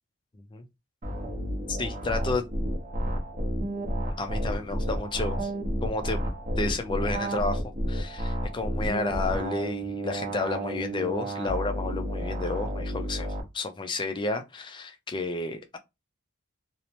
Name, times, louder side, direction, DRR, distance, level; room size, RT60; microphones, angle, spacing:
sound 1, 1.0-13.4, right 1 dB, 35° right, 0.7 m, -31 dB
voice 1, 1.7-2.4 4.2-5.5 5.8-6.2 6.6-7.6 7.9-15.8, left 3 dB, 20° left, 0.3 m, -31 dB
2.8 x 2.0 x 2.9 m
head